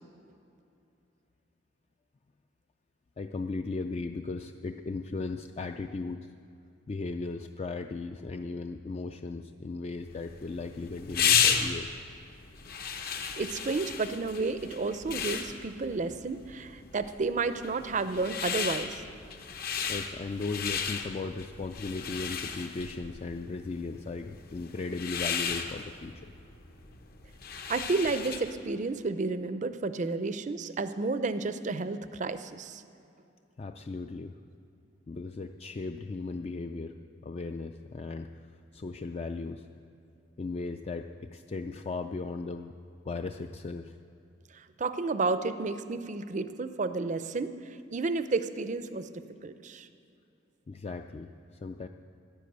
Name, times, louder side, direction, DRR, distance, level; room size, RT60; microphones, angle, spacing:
voice 1, 3.2-6.3 6.9-12.0 19.9-26.3 33.6-34.4 35.1-37.0 37.2-39.7 40.4-42.7 43.0-44.0 50.7-51.9, left 3 dB, 35° left, 6 dB, 0.4 m, -37 dB
sound 1, 10.1-28.6, left 7 dB, 55° left, 0.9 m, -34 dB
voice 2, 13.2-19.0 27.7-32.8 44.8-47.5 47.9-49.1 49.4-49.9, right 3 dB, 40° right, 12 dB, 0.5 m, -31 dB
11.0 x 10.0 x 8.0 m, 2.6 s
head